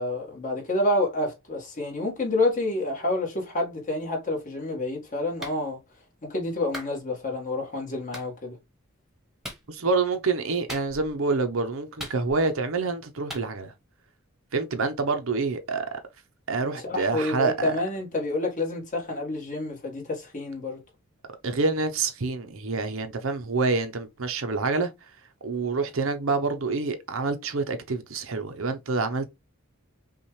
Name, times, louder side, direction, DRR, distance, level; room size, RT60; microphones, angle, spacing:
voice 1, 0.0-5.8 6.2-8.6 16.8-20.8, left 2 dB, 40° left, 1.7 m, -28 dB
Clapping, 5.4-5.6 6.7-6.9 8.1-8.3 9.4-9.7 10.7-11.2 12.0-12.6 13.3-13.5, equal, ahead, 1.3 m, -38 dB
voice 2, 9.7-13.7 14.5-16.0 16.5-17.8 21.4-24.9 25.4-29.3, right 3 dB, 65° right, 0.8 m, -27 dB
5.5 x 2.4 x 3.2 m
head